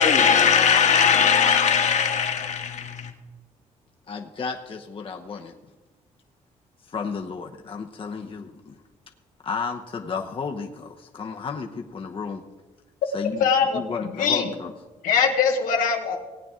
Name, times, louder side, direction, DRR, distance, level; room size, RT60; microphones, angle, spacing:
voice 1, 0.0-3.1, left 7 dB, 60° left, 1.6 m, -19 dB
voice 2, 4.1-5.5 6.9-8.7 9.4-12.4 13.1-13.4 13.7-14.7, left 5 dB, 40° left, 0.9 m, -33 dB
voice 3, 13.4-13.8 14.1-14.5 15.0-16.2, left 6 dB, 85° left, 1.1 m, -21 dB
17.5 x 9.0 x 3.7 m
cardioid pair, 85°, 14 cm